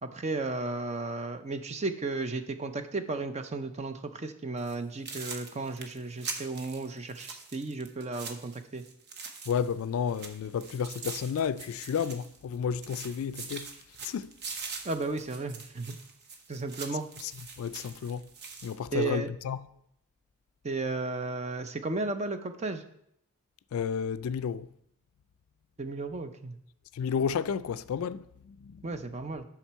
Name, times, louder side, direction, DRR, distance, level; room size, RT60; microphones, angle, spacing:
voice 1, 0.0-8.8 14.8-16.0 16.5-17.0 18.9-19.3 20.6-22.8 25.8-26.6 28.8-29.5, right 3 dB, 30° right, 0.5 m, -34 dB
sound 1, 4.6-4.8 5.1-9.8 10.1-12.6 12.8-18.8, right 5 dB, 50° right, 0.9 m, -43 dB
voice 2, 9.5-13.7 14.0-14.3 17.2-17.3 17.6-18.3 18.6-19.7 23.7-24.7 26.9-28.8, left 7 dB, 65° left, 0.3 m, -32 dB
7.1 x 6.0 x 4.5 m
head